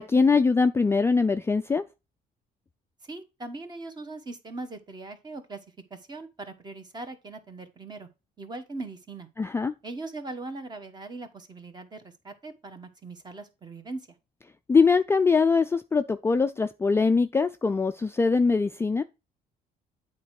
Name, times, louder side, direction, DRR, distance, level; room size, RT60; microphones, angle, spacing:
voice 1, 0.0-1.8 9.4-9.7 14.7-19.0, left 4 dB, 15° left, 0.4 m, -22 dB
voice 2, 3.0-5.6 5.9-8.1 8.4-9.3 9.8-14.1, right 2 dB, 25° right, 1.4 m, -40 dB
8.5 x 4.4 x 4.8 m
cardioid pair, 110°, 17 cm